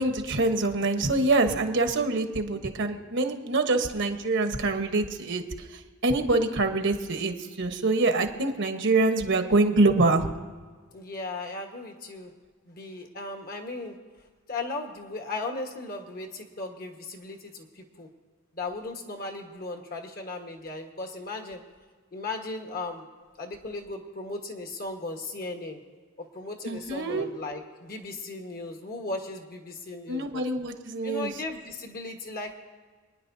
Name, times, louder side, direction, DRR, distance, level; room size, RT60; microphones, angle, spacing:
voice 1, 0.0-5.4 6.0-10.3 26.6-27.3 30.1-31.3, right 2 dB, 60° right, 6 dB, 1.1 m, -25 dB
voice 2, 10.9-12.3 12.7-13.9 14.5-17.6 18.0-18.1 18.6-21.6 22.1-23.1 23.4-25.8 26.2-30.4 31.0-32.5, left 2 dB, 45° left, 4 dB, 1.3 m, -36 dB
28.0 x 10.0 x 2.7 m, 1.5 s
head